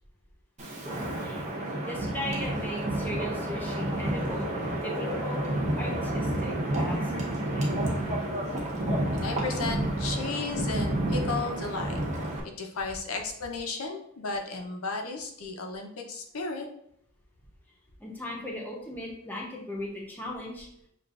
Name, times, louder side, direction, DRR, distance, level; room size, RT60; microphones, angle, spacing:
Wind, 0.6-12.4, right 1 dB, 35° right, 0.9 m, -30 dB
voice 1, 0.8-1.5 1.9-4.5 4.8-5.4 5.8-7.8 18.0-20.7, left 1 dB, 10° left, -2 dB, 0.8 m, -38 dB
voice 2, 9.1-12.0 12.6-16.7, left 4 dB, 80° left, 3 dB, 0.7 m, -34 dB
6.6 x 2.4 x 2.4 m, 0.71 s
head